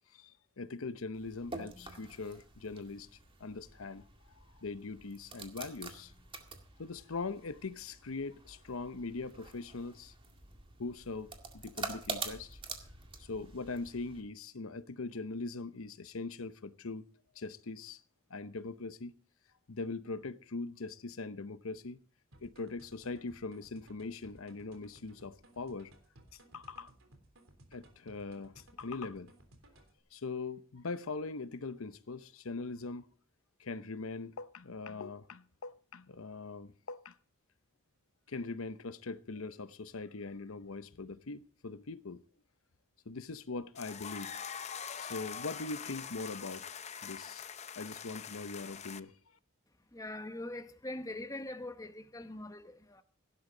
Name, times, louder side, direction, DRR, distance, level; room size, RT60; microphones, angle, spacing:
voice 1, 0.1-4.1 4.3-6.1 6.8-10.1 10.8-12.6 13.2-17.1 17.3-18.0 18.3-19.1 19.7-22.0 22.4-25.9 26.3-26.9 27.7-29.3 30.1-33.1 33.6-37.2 38.3-42.2 43.1-44.3 45.0-46.6 47.0-49.1, left 3 dB, 85° left, 0.8 m, -41 dB
sound 1, 1.1-14.2, right 4 dB, 25° right, 2.0 m, -47 dB
sound 2, 22.3-30.0, right 1 dB, 75° right, 3.4 m, -60 dB
sound 3, 43.7-49.0, left 7 dB, 35° left, 0.6 m, -44 dB
voice 2, 49.9-53.0, left 1 dB, 15° left, 1.0 m, -42 dB
16.5 x 11.5 x 3.9 m
head